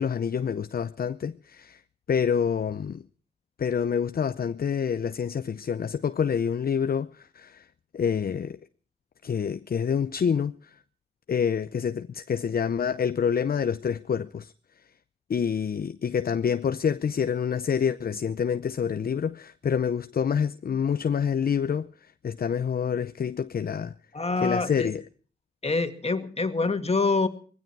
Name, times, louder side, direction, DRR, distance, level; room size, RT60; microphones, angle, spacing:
voice 1, 0.0-1.8 2.1-3.0 3.6-7.7 7.9-8.6 9.2-10.6 11.3-14.5 15.3-21.9 22.2-23.9 24.4-25.0, left 7 dB, 55° left, 0.6 m, -27 dB
voice 2, 24.1-24.9 25.6-27.3, left 3 dB, 35° left, 2.1 m, -26 dB
19.0 x 16.0 x 4.7 m
cardioid pair, 45°, 18 cm